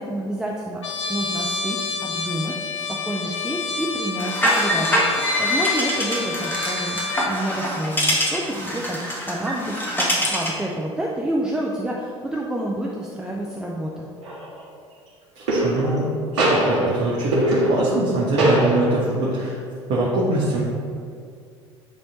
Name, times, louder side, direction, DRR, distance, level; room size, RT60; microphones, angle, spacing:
voice 1, 0.0-2.6 2.9-14.1, right 1 dB, 5° right, -3 dB, 0.7 m, -29 dB
Trumpet, 0.8-7.4, left 4 dB, 80° left, 0.5 m, -29 dB
sound 1, 4.2-10.6, equal, 15° left, 1.6 m, -24 dB
sound 2, 14.2-14.6 15.5-16.1 16.4-18.1 18.4-19.1, right 1 dB, 75° right, 1.6 m, -21 dB
voice 2, 15.3-19.6 19.9-20.6, right 2 dB, 50° right, -6 dB, 1.2 m, -23 dB
9.8 x 3.5 x 4.0 m, 2.3 s
figure-of-eight pair, 65°, 15 cm